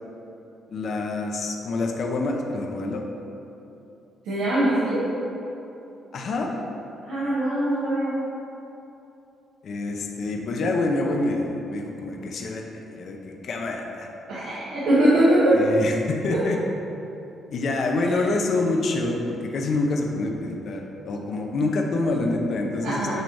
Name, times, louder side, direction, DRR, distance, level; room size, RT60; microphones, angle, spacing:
voice 1, 0.7-3.0 6.1-6.5 9.6-14.1 15.5-16.6 17.5-23.2, left 2 dB, 60° left, 1 dB, 0.7 m, -27 dB
voice 2, 4.2-5.0 7.1-8.1 14.3-15.6 18.0-18.2 22.8-23.2, right 1 dB, 85° right, -10 dB, 1.4 m, -22 dB
8.0 x 3.0 x 5.2 m, 2.9 s
cardioid pair, 90°, 0 cm